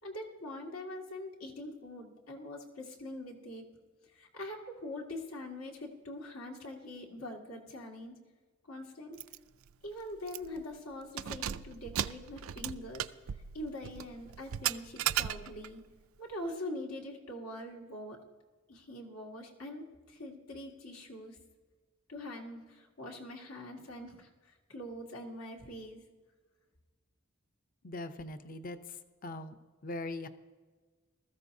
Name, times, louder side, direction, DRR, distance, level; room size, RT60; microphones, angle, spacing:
voice 1, 0.0-3.7 4.1-8.1 8.7-9.2 9.8-13.1 13.5-15.8 16.2-18.2 18.7-21.4 22.1-26.0, left 1 dB, 90° left, 0 dB, 2.1 m, -43 dB
Keys jangling, 9.2-9.4 9.7-9.8 10.3-10.6 11.0-15.8, right 11 dB, 75° right, 0.4 m, -36 dB
voice 2, 27.8-28.8 29.2-29.6 29.8-30.3, left 2 dB, 40° left, 10 dB, 0.6 m, -40 dB
20.0 x 14.0 x 2.7 m, 1.4 s
head